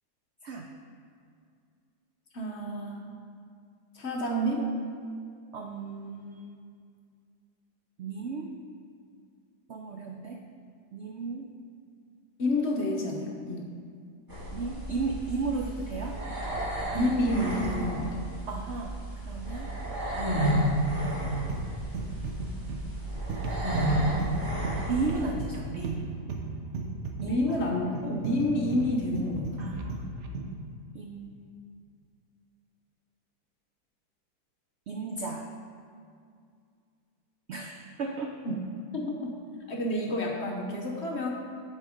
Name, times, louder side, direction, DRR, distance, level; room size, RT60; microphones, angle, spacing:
voice 1, 2.3-3.0 3.9-4.7 12.4-13.7 16.9-18.1 27.2-29.7 38.4-38.5 38.9-39.3 39.7-41.3, left 1 dB, 50° left, 0 dB, 0.9 m, -29 dB
voice 2, 5.5-6.5 8.0-8.5 9.7-10.4 10.9-11.5 14.5-16.2 18.5-19.0 19.3-19.7 24.8-26.1 27.2-27.6 28.1-28.2 29.6-30.0 30.9-31.6 34.9-35.5 37.5-38.4, right 4 dB, 80° right, 3 dB, 0.6 m, -34 dB
sound 1, 14.3-25.3, right 1 dB, 10° right, 2.2 m, -31 dB
sound 2, 21.0-30.6, right 2 dB, 55° right, 0.8 m, -36 dB
11.0 x 4.2 x 5.0 m, 2.2 s
omnidirectional pair, 1.8 m